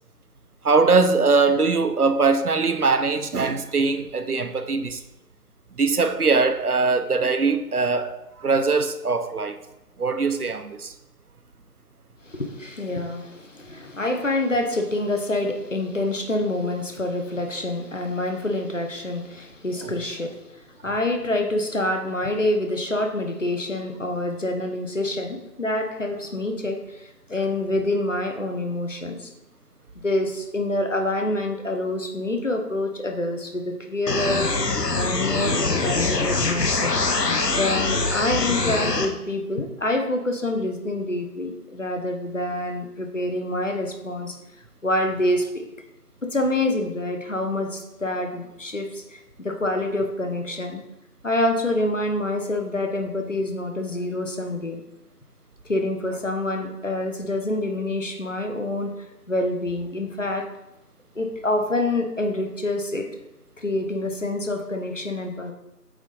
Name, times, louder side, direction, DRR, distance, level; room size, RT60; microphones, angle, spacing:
voice 1, 0.6-5.0 5.8-9.6 10.0-10.9 35.4-35.5, right 4 dB, 70° right, 0.7 m, -21 dB
voice 2, 12.2-29.3 30.0-34.5 34.9-36.9 37.5-44.4 44.8-45.7 46.2-50.8 51.2-54.8 55.6-60.5 61.1-63.1 63.6-65.5, left 1 dB, 50° left, 0.9 m, -26 dB
sound 1, 34.1-39.1, left 3 dB, 80° left, 1.0 m, -23 dB
8.0 x 3.8 x 3.9 m
figure-of-eight pair, 170°, 47 cm